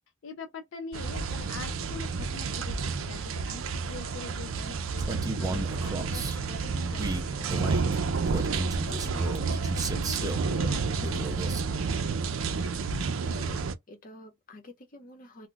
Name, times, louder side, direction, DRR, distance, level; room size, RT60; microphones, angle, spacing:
voice 1, 0.2-7.2 7.5-7.9 8.8-11.4, left 3 dB, 75° left, 0.5 m, -44 dB
sound 1, 0.9-13.7, right 4 dB, 90° right, 0.5 m, -30 dB
Male speech man speaking, 5.0-6.4 6.9-10.5 11.0-11.7, right 2 dB, 20° right, 0.5 m, -34 dB
voice 2, 13.2-15.5, left 1 dB, 45° left, 0.8 m, -49 dB
2.3 x 2.2 x 3.8 m
head